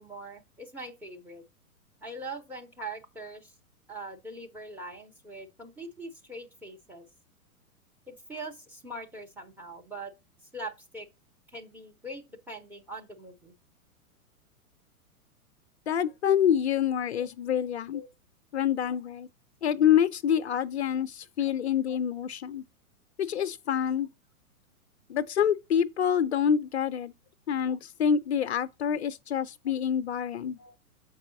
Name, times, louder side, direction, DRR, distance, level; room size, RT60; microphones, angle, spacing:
voice 1, 0.0-1.4 2.0-3.5 3.9-7.0 8.1-10.1 10.5-11.1 11.5-13.5 17.1-17.3 17.9-18.1 30.6-30.7, right 2 dB, 5° right, 0.6 m, -42 dB
voice 2, 15.9-18.0 18.5-19.3 19.6-22.6 23.2-24.1 25.1-27.1 27.5-30.6, left 8 dB, 50° left, 0.5 m, -27 dB
7.2 x 4.7 x 3.8 m
figure-of-eight pair, 105°, 44 cm